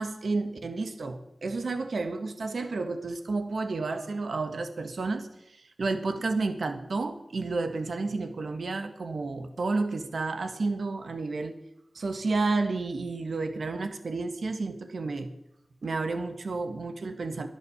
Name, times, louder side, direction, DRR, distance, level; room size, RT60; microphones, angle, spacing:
voice 1, 0.0-11.6 12.0-15.4 15.8-17.5, right 3 dB, 90° right, 8 dB, 1.6 m, -31 dB
22.0 x 8.2 x 7.2 m, 0.83 s
wide cardioid pair, 85°, 0 cm